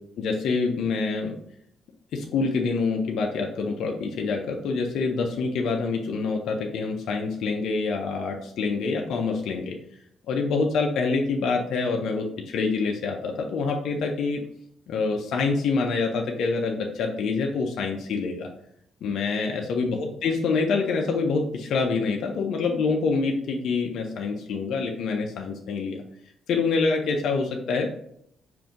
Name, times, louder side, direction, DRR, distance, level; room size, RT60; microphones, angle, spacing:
voice 1, 0.2-1.4 2.1-9.8 10.3-12.3 12.5-14.4 14.9-18.5 19.0-26.0 26.5-27.9, left 4 dB, 75° left, 2 dB, 0.6 m, -26 dB
5.6 x 2.6 x 3.7 m, 0.70 s
cardioid pair, 90°, 0 cm